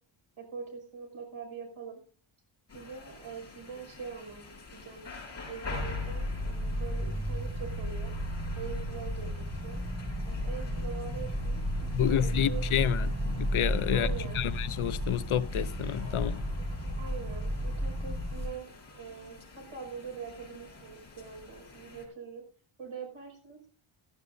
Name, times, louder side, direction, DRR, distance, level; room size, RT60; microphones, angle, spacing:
voice 1, 0.4-2.0 2.7-5.1 5.5-8.2 8.5-9.8 10.3-12.9 13.9-14.4 17.0-22.4 22.8-23.6, right 6 dB, 75° right, 5.9 m, -43 dB
sound 1, 2.7-22.1, left 3 dB, 30° left, 5.7 m, -48 dB
sound 2, 5.7-18.5, equal, 30° right, 5.0 m, -33 dB
voice 2, 11.9-16.5, left 10 dB, 75° left, 0.7 m, -29 dB
17.5 x 14.5 x 2.6 m
wide cardioid pair, 170°, 50 cm